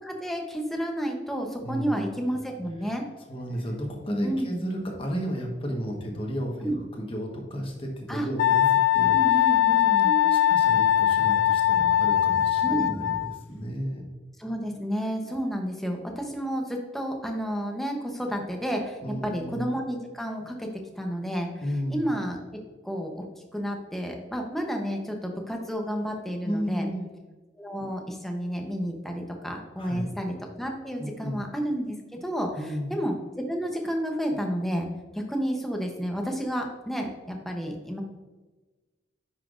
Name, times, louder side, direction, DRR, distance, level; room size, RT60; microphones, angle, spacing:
voice 1, 0.0-3.0 4.2-4.6 6.6-6.8 8.1-8.3 9.1-10.1 12.6-12.9 14.4-20.7 21.0-22.4 22.8-23.2 23.5-26.9 27.6-34.9 35.1-38.0, equal, ahead, 1 dB, 0.8 m, -31 dB
voice 2, 1.6-2.1 2.8-2.9 3.3-9.5 10.0-14.0 19.0-19.6 21.6-22.0 26.4-27.0 29.8-30.1 31.0-31.4 32.5-32.9, equal, 30° left, 1 dB, 1.2 m, -33 dB
Wind instrument woodwind instrument, 8.4-13.4, left 11 dB, 85° left, 0.3 m, -21 dB
9.7 x 5.8 x 2.5 m, 1.2 s
head